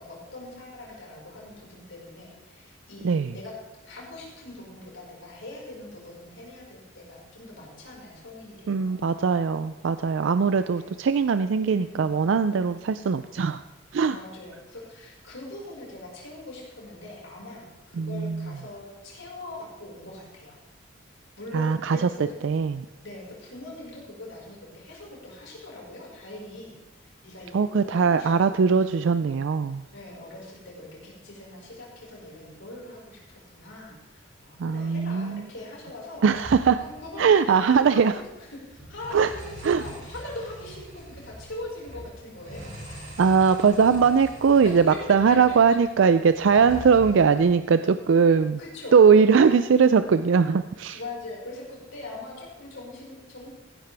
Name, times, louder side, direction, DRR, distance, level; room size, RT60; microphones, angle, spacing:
voice 1, 0.0-3.6 3.8-9.1 10.7-10.9 11.6-12.1 14.1-20.6 21.4-22.4 23.0-26.7 27.0-28.3 28.7-29.0 29.9-36.3 36.8-42.7 44.6-45.8 48.6-49.7 50.9-53.5, left 2 dB, 75° left, -3 dB, 5.0 m, -42 dB
voice 2, 8.7-13.6 13.9-14.2 18.0-18.5 21.5-22.1 22.4-22.9 27.5-29.8 34.6-35.4 36.2-36.8 37.2-38.1 39.1-39.3 39.6-39.8 43.2-48.6 48.9-51.0, right 6 dB, 65° right, 11 dB, 0.4 m, -20 dB
sound 1, 36.3-37.9 38.2-38.3 38.6-45.8 46.1-47.5, right 1 dB, 35° right, 4.5 m, -43 dB
15.0 x 11.5 x 3.4 m, 1.1 s
head